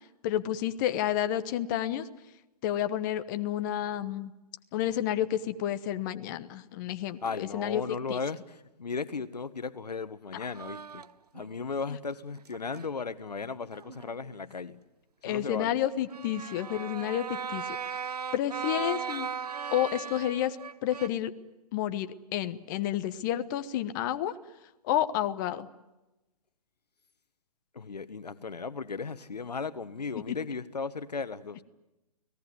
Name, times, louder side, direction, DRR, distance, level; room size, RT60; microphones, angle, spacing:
voice 1, 0.2-2.1 2.6-4.3 4.7-7.8 8.1-8.2 15.2-17.9 18.3-19.3 19.7-20.6 20.8-21.3 21.7-24.3 24.8-25.7, left 11 dB, 30° left, 1.1 m, -30 dB
voice 2, 7.2-11.0 11.3-14.8 15.2-15.8 27.7-31.6, left 5 dB, 85° left, 1.4 m, -36 dB
sound 1, 10.5-11.6 12.4-12.9 13.7-14.4 16.1-21.1, right 6 dB, 75° right, 1.0 m, -37 dB
30.0 x 19.0 x 9.5 m
hypercardioid pair, 140°, 20 cm